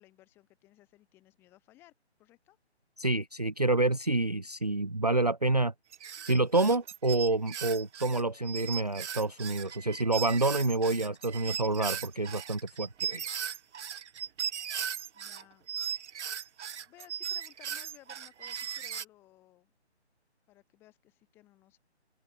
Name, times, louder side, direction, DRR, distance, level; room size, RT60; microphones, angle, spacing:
voice 1, 0.0-1.9 2.2-2.6 15.1-15.7 16.8-19.7 20.5-21.8, left 16 dB, 5° left, 4.4 m, -59 dB
voice 2, 3.0-5.7 6.2-13.3, right 2 dB, 35° right, 0.5 m, -28 dB
sound 1, 5.9-15.4 15.7-19.1, right 8 dB, 85° right, 0.6 m, -37 dB
hypercardioid pair, 175°, 34 cm